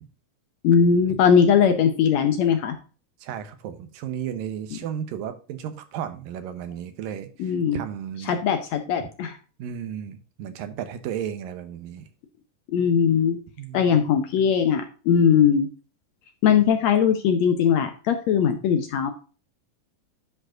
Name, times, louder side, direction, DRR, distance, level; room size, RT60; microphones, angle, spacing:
voice 1, 0.6-2.7 7.4-7.8 8.3-9.3 12.7-13.4 13.7-15.7 16.4-19.1, left 7 dB, 70° left, 7 dB, 1.7 m, -20 dB
voice 2, 3.2-8.4 9.6-12.1 13.6-14.0, right 9 dB, 85° right, 10 dB, 2.8 m, -34 dB
11.0 x 5.2 x 3.7 m, 0.36 s
omnidirectional pair, 3.9 m